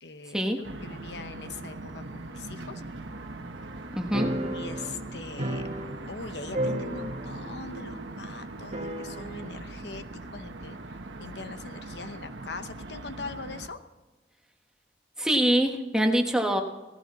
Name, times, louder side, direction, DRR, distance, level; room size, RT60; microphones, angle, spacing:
voice 1, 0.0-0.5 0.8-2.8 4.4-5.7 6.1-13.8, left 4 dB, 65° left, 10 dB, 0.8 m, -41 dB
sound 1, 0.6-13.7, right 2 dB, 85° right, 1.2 m, -41 dB
voice 2, 3.9-4.3 15.2-16.6, right 1 dB, 5° right, 3 dB, 1.3 m, -24 dB
sound 2, 4.1-6.3 6.5-7.5 7.8-7.9 8.7-9.5, right 1 dB, 35° right, 1.4 m, -33 dB
17.0 x 14.5 x 4.2 m, 1.2 s
head